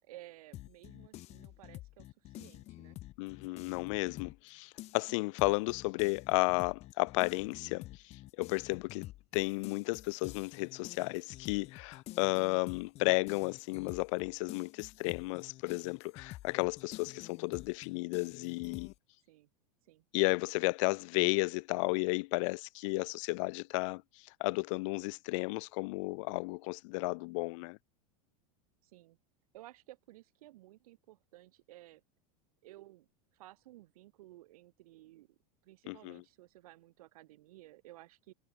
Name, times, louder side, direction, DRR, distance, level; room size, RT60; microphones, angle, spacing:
voice 1, 0.0-3.0 19.3-19.5 19.8-20.0 28.8-29.2 29.5-32.0 32.6-33.1 33.3-35.4 35.6-38.3, right 16 dB, 75° right, 5.5 m, -55 dB
sound 1, 0.5-4.5 4.8-19.0, left 16 dB, 35° left, 2.1 m, -49 dB
voice 2, 3.2-9.1 9.3-18.9 20.1-24.0 24.4-27.8 35.9-36.2, left 26 dB, 55° left, 1.0 m, -33 dB
supercardioid pair, 155°, 19 cm